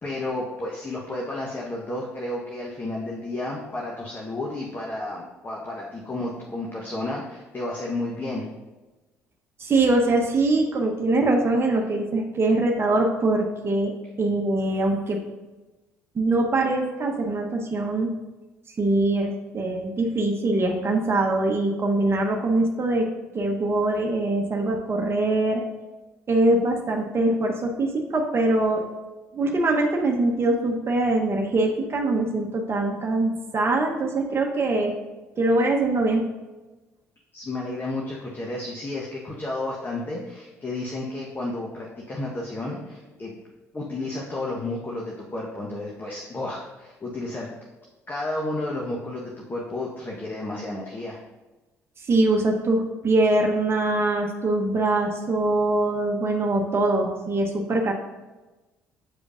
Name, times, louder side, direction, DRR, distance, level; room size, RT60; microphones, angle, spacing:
voice 1, 0.0-8.5 37.3-43.3 43.7-47.5 48.1-51.2, left 2 dB, 25° left, -3 dB, 1.1 m, -32 dB
voice 2, 9.6-15.2 16.1-18.1 18.8-23.1 23.3-25.6 26.3-28.9 29.3-34.9 35.4-36.2 52.1-57.9, right 2 dB, 30° right, 1 dB, 1.0 m, -23 dB
8.2 x 5.0 x 2.5 m, 1.2 s
hypercardioid pair, 55°, 8 cm